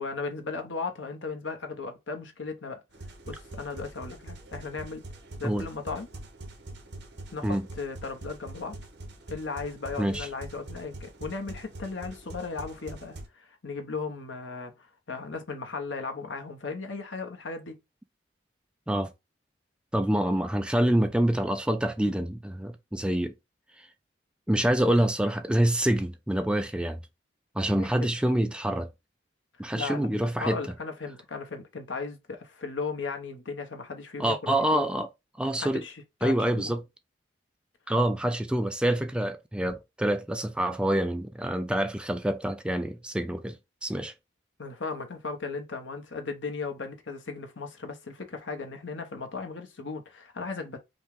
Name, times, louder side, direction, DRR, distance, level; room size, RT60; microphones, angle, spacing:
voice 1, 0.0-2.8 3.2-5.0 5.4-6.1 7.3-8.8 9.3-17.8 27.7-28.1 29.6-34.9 35.6-36.7 44.6-50.8, left 4 dB, 80° left, 1.0 m, -36 dB
sound 1, 2.9-13.3, right 1 dB, 65° right, 1.2 m, -44 dB
voice 2, 19.9-23.3 23.8-23.9 24.5-27.0 27.6-28.9 29.6-30.6 34.2-35.1 35.4-35.8 36.2-36.8 37.9-43.6 43.8-44.1, right 1 dB, 5° right, 0.3 m, -26 dB
5.3 x 2.3 x 3.6 m
head